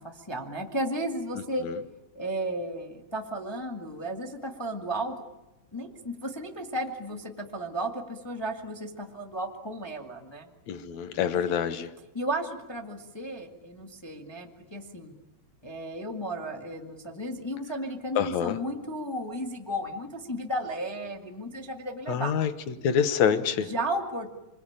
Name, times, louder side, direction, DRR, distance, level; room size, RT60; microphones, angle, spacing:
voice 1, 0.0-1.7 2.1-5.1 5.7-10.5 11.1-11.5 12.1-15.1 15.6-22.3 23.6-24.3, right 1 dB, 20° left, 3 dB, 0.6 m, -34 dB
voice 2, 10.7-11.9 18.2-18.6 22.1-22.5 22.8-23.7, left 8 dB, 70° left, 11 dB, 1.8 m, -26 dB
28.0 x 23.0 x 8.9 m, 1.0 s
omnidirectional pair, 4.5 m